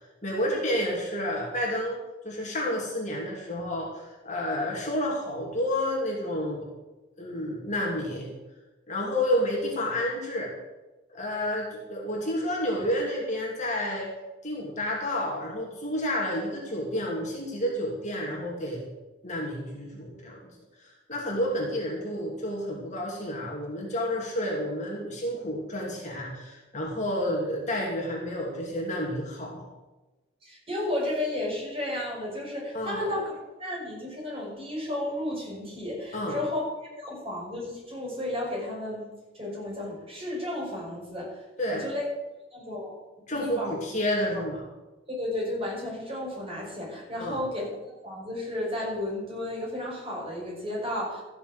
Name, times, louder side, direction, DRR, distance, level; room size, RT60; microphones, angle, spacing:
voice 1, 0.2-6.7 7.2-8.3 8.9-10.5 11.1-14.1 14.4-18.9 19.2-20.5 20.8-29.6 32.7-33.1 36.1-36.4 41.6-41.8 43.3-44.6 47.2-47.4, left 1 dB, 35° left, -2 dB, 2.9 m, -30 dB
voice 2, 30.4-36.6 37.0-39.1 39.3-42.0 42.5-42.9 43.3-43.8 44.3-44.4 45.1-51.2, left 1 dB, 30° right, -4 dB, 5.9 m, -33 dB
14.0 x 6.9 x 8.0 m, 1.1 s
head